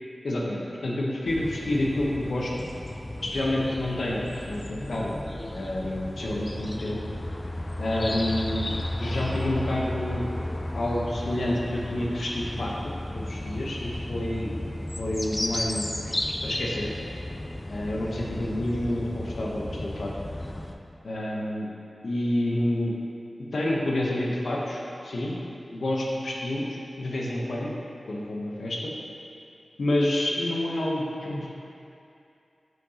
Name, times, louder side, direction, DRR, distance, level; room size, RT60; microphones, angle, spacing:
voice 1, 0.2-2.5 3.2-5.1 5.5-7.0 7.8-8.7 9.0-14.5 15.0-15.9 16.4-16.9 17.7-20.1 21.0-21.7 22.0-22.9 23.5-25.3 25.7-27.7 28.1-28.9 29.8-31.5, left 1 dB, 85° left, -3 dB, 0.9 m, -29 dB
sound 1, 1.3-20.8, left 1 dB, 30° left, 0.4 m, -34 dB
7.8 x 4.6 x 2.8 m, 2.7 s
wide cardioid pair, 60°, 0 cm